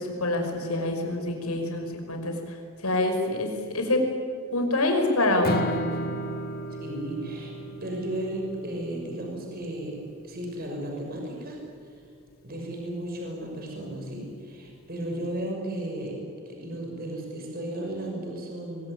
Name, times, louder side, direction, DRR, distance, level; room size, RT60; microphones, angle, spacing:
voice 1, 0.0-2.6 2.8-3.5 3.7-4.0 4.5-5.6, left 2 dB, 85° left, 4 dB, 5.6 m, -26 dB
Strum, 5.4-11.7, equal, 45° left, 1.7 m, -35 dB
voice 2, 6.8-10.0 10.2-11.6 12.4-16.2 16.4-18.9, right 1 dB, 45° right, 0 dB, 6.2 m, -34 dB
24.5 x 23.5 x 9.8 m, 2.3 s
head